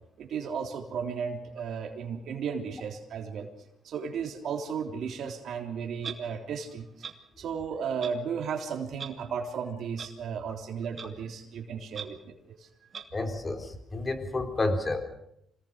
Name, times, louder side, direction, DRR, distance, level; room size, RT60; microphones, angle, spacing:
voice 1, 0.2-3.5 3.8-6.9 7.4-12.7, right 6 dB, 70° right, 3 dB, 3.5 m, -34 dB
Clock, 6.0-6.2 7.0-7.1 8.0-8.1 9.0-9.1 10.0-10.1 11.0-11.1 11.9-12.0 12.9-13.0, right 6 dB, 45° right, 2.6 m, -38 dB
voice 2, 13.1-15.0, left 2 dB, 25° left, 6 dB, 3.9 m, -30 dB
26.5 x 19.0 x 6.6 m, 0.76 s
cardioid pair, 90°, 0 cm